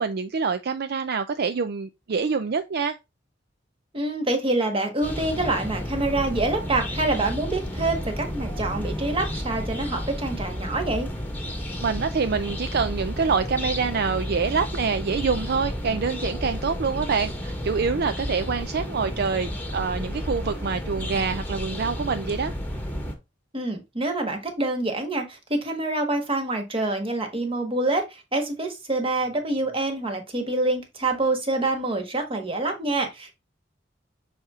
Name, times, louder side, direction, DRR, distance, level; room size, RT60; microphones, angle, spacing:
voice 1, 0.0-3.0 11.8-22.5, right 5 dB, 55° right, 0.5 m, -26 dB
voice 2, 3.9-11.1 23.5-33.3, right 2 dB, 30° right, 1.4 m, -26 dB
sound 1, 5.0-23.1, equal, 10° left, 1.3 m, -32 dB
6.4 x 4.3 x 3.6 m
head